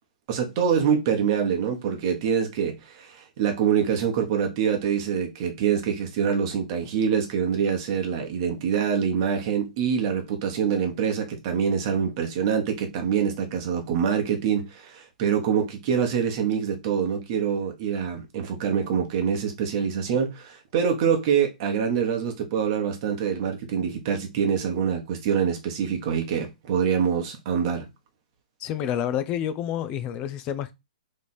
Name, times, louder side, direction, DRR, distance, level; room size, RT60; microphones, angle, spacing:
voice 1, 0.3-27.9, right 7 dB, 35° right, 1.1 m, -25 dB
voice 2, 28.6-30.7, left 10 dB, 20° left, 0.4 m, -28 dB
3.3 x 3.1 x 4.2 m
hypercardioid pair, 165°, 5 cm